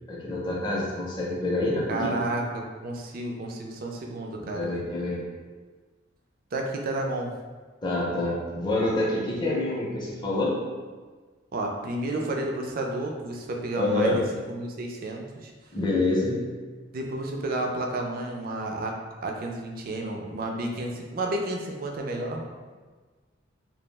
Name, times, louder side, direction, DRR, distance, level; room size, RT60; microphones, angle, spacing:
voice 1, 0.1-2.1 4.5-5.2 7.8-10.5 13.8-14.2 15.7-16.4, left 2 dB, 20° left, -5 dB, 0.5 m, -27 dB
voice 2, 1.9-4.8 6.5-7.3 11.5-15.5 16.9-19.0 19.2-22.4, right 2 dB, 45° right, 1 dB, 0.3 m, -31 dB
2.3 x 2.0 x 3.2 m, 1.4 s
head